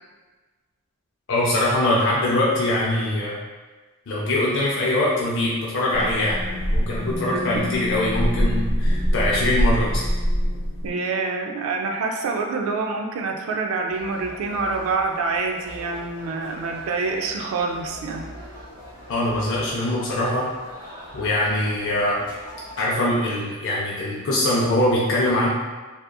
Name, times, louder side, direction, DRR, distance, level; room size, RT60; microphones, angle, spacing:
voice 1, 1.3-3.4 4.1-6.4 6.7-10.1 19.1-20.5 21.1-22.2 22.8-25.5, left 1 dB, 60° left, -5 dB, 0.5 m, -22 dB
sound 1, 5.9-10.9, equal, 5° left, 0.6 m, -24 dB
voice 2, 7.3-7.7 10.8-18.3, right 4 dB, 65° right, 3 dB, 0.3 m, -26 dB
sound 2, 13.9-23.0, equal, 20° right, 0.9 m, -42 dB
2.8 x 2.3 x 2.2 m, 1.3 s
head